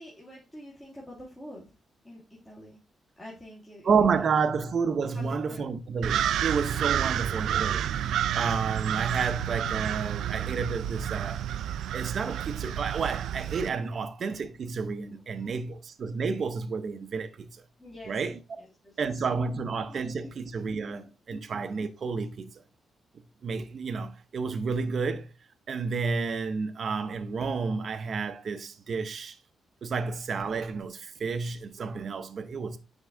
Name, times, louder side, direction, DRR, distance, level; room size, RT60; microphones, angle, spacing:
voice 1, 0.0-1.7 2.0-2.8 3.2-3.9 4.1-4.3 5.1-5.7 6.9-7.0 15.3-15.5 17.8-18.2 18.6-19.3 19.5-20.4 21.3-21.5, left 1 dB, 10° left, 1.6 m, -47 dB
voice 2, 3.8-7.9 8.3-11.4 11.9-17.6 18.1-18.4 19.0-22.5 23.1-25.3 25.7-29.4 29.8-32.8, right 5 dB, 45° right, 0.7 m, -30 dB
sound 1, 6.0-13.7, right 10 dB, 85° right, 0.3 m, -30 dB
9.3 x 3.6 x 3.4 m
wide cardioid pair, 155°, 0 cm